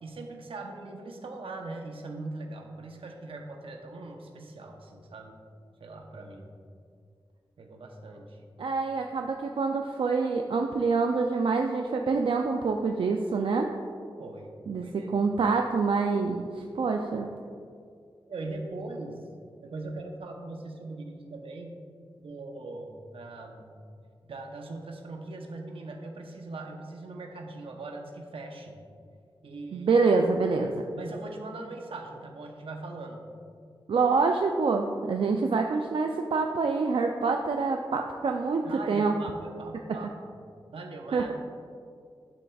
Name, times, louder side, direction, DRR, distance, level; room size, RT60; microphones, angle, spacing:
voice 1, 0.0-5.4 5.8-6.5 7.6-8.4 14.2-14.5 14.8-15.1 18.3-19.3 19.6-21.8 22.2-23.7 24.3-28.8 29.4-29.9 31.0-33.3 38.6-40.1 40.7-41.3, right 2 dB, 85° right, 2 dB, 0.8 m, -40 dB
voice 2, 8.6-13.7 14.7-16.5 16.7-17.3 29.7-30.8 33.9-39.1 41.1-41.3, right 4 dB, 70° right, 3 dB, 0.4 m, -26 dB
11.0 x 5.9 x 2.3 m, 2.3 s
wide cardioid pair, 135°, 9 cm